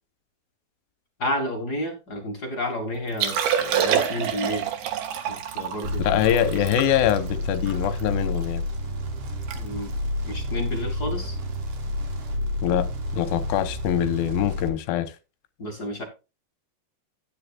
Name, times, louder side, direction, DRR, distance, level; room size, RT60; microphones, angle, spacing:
voice 1, 1.2-4.7 5.3-6.2 9.5-9.9 10.3-11.4 15.6-16.0, left 1 dB, 60° left, 1.0 m, -31 dB
Liquid, 3.1-8.5 8.9-9.0 9.3-9.6 9.8-10.1 10.7-10.9 12.4-12.5, right 8 dB, 70° right, 3.2 m, -27 dB
sound 1, 5.8-14.7, left 1 dB, 50° right, 2.6 m, -30 dB
voice 2, 6.0-8.6 12.6-12.9 13.1-15.1, left 11 dB, 80° left, 2.5 m, -24 dB
10.5 x 10.5 x 2.3 m
omnidirectional pair, 4.5 m